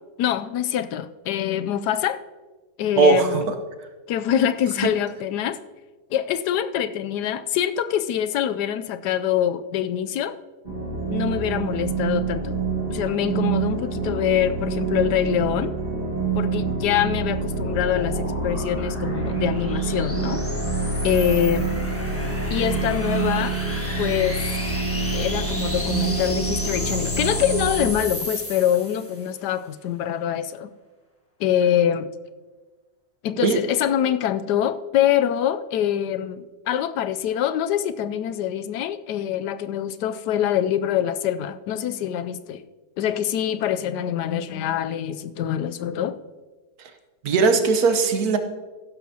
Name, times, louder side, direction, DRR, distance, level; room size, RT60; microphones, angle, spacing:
voice 1, 0.2-2.2 2.8-3.5 4.1-5.6 6.1-10.3 11.1-12.5 12.9-15.7 16.3-20.4 21.0-21.7 22.5-23.6 24.0-24.4 25.1-30.7 31.4-32.1 33.2-42.6 43.0-46.2, left 10 dB, 80° left, 1.2 m, -24 dB
voice 2, 3.0-3.5 4.8-4.9 33.4-33.6 46.8-46.9 47.2-48.4, right 4 dB, 65° right, 1.4 m, -19 dB
sound 1, 10.6-27.9, right 4 dB, 30° right, 2.8 m, -27 dB
sound 2, 17.3-29.3, left 1 dB, 10° left, 1.2 m, -34 dB
15.0 x 12.0 x 2.8 m
omnidirectional pair, 1.8 m